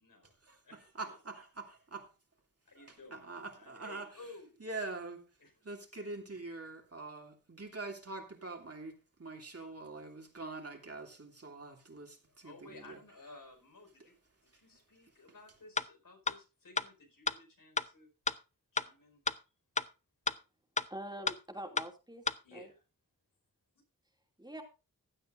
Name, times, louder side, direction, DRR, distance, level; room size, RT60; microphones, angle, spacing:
voice 1, 0.0-0.3 0.6-1.2 2.6-4.6 5.4-5.6 6.3-6.4 12.3-14.1 14.5-18.1 18.7-19.2 22.4-22.8, left 3 dB, 85° left, 4.9 m, -55 dB
voice 2, 0.9-2.1 3.1-4.1 4.6-5.2 5.6-13.0, right 3 dB, 45° right, 2.7 m, -44 dB
sound 1, 15.8-15.9 16.3-16.4 16.8-16.9 17.3-17.4 17.8-17.9 18.3-18.4 18.8-18.9 19.3-19.4 19.8-19.9 20.3-20.4 20.8-20.9 21.3-21.4 21.8-21.9 22.3-22.4, left 3 dB, 20° left, 0.6 m, -30 dB
voice 3, 20.9-22.2 22.5-22.7 24.4-24.6, right 1 dB, 15° right, 2.6 m, -44 dB
16.0 x 11.0 x 2.6 m
wide cardioid pair, 80°, 33 cm